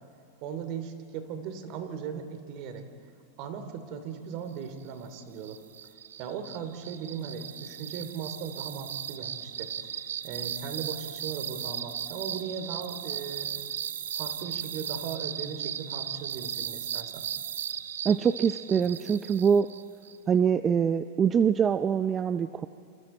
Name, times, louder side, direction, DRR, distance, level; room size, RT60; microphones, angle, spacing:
voice 1, 0.4-2.9 3.4-5.6 6.2-9.9 10.2-13.5 14.1-17.3, right 6 dB, 50° right, 8 dB, 3.0 m, -38 dB
sound 1, 5.1-20.2, right 9 dB, 85° right, 0.8 m, -37 dB
voice 2, 18.0-19.7 20.3-22.7, right 7 dB, 25° right, 11 dB, 0.6 m, -24 dB
29.0 x 27.5 x 4.4 m, 2.6 s
hypercardioid pair, 115°, 0 cm